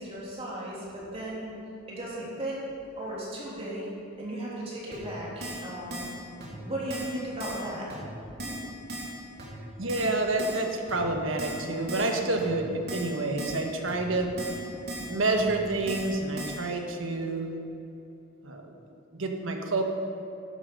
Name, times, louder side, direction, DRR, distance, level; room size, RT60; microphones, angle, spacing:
voice 1, 0.0-1.5 1.9-2.6 3.0-3.9 4.2-6.1 6.6-7.9 8.3-8.6 14.7-15.2, right 1 dB, 30° right, -6 dB, 3.2 m, -36 dB
Keyboard (musical), 4.9-5.0 5.4-5.6 5.9-6.1 6.4-6.5 6.9-7.1 7.4-7.6 7.9-8.0 8.4-8.6 8.9-9.1 9.4-9.5 9.9-10.1 10.4-10.6 10.9-11.0 11.4-11.6 11.9-12.1 12.4-12.5 12.9-13.1 13.4-13.6 13.9-14.0 14.4-14.6 14.9-15.1 15.4-15.5 15.9-16.1 16.4-16.6, right 1 dB, 55° right, 3.2 m, -37 dB
voice 2, 9.8-14.3 15.0-17.5 18.4-18.7 19.1-19.8, right 2 dB, 70° right, 3 dB, 1.4 m, -28 dB
12.0 x 10.5 x 5.4 m, 2.8 s
head